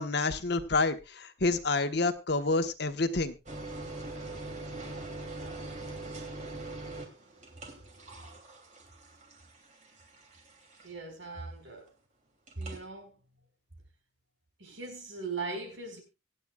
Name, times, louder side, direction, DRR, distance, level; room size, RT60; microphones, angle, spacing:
voice 1, 0.0-3.4, left 3 dB, 55° left, 1.2 m, -28 dB
sound 1, 3.5-11.1 12.5-12.8, right 2 dB, 40° right, 2.9 m, -43 dB
voice 2, 10.8-11.9 12.6-13.2 14.6-16.0, right 3 dB, 75° right, 5.0 m, -39 dB
25.5 x 9.0 x 2.4 m
head